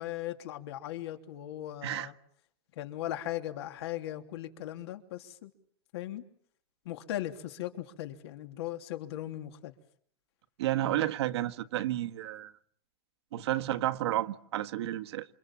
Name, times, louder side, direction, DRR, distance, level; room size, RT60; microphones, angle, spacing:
voice 1, 0.0-2.1 2.8-5.5 5.9-6.2 6.8-9.7, left 13 dB, 75° left, 3.3 m, -38 dB
voice 2, 10.6-12.5 13.3-15.3, right 14 dB, 85° right, 1.6 m, -31 dB
29.0 x 27.0 x 7.4 m
supercardioid pair, 165°, 14 cm